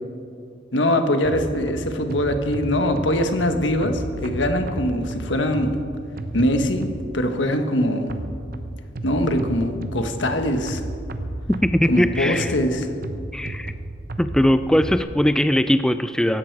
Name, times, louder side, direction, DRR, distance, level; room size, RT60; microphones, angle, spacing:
voice 1, 0.7-5.8 6.3-8.1 9.0-10.8 11.9-12.9, left 1 dB, 85° left, 6 dB, 1.5 m, -22 dB
sound 1, 1.2-7.3 8.1-15.0, right 1 dB, 55° right, 1.0 m, -33 dB
voice 2, 11.5-12.5 13.3-13.7 14.2-16.4, equal, 5° left, 11 dB, 0.3 m, -20 dB
17.5 x 15.5 x 4.8 m, 2.3 s
head